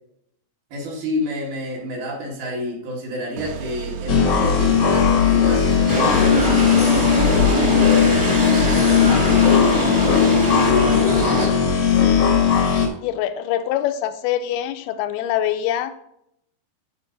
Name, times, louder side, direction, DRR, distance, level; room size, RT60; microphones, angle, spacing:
voice 1, 0.7-8.0 8.7-10.6, equal, 75° right, -3 dB, 3.9 m, -30 dB
sound 1, 3.4-9.8, right 7 dB, 90° right, 2.5 m, -33 dB
sound 2, 4.1-12.9, left 7 dB, 70° left, 1.0 m, -17 dB
sound 3, 5.9-11.5, equal, 20° right, 0.9 m, -22 dB
voice 2, 13.0-15.9, left 11 dB, 85° left, 9 dB, 2.5 m, -24 dB
11.5 x 4.4 x 3.9 m, 0.77 s
omnidirectional pair, 4.4 m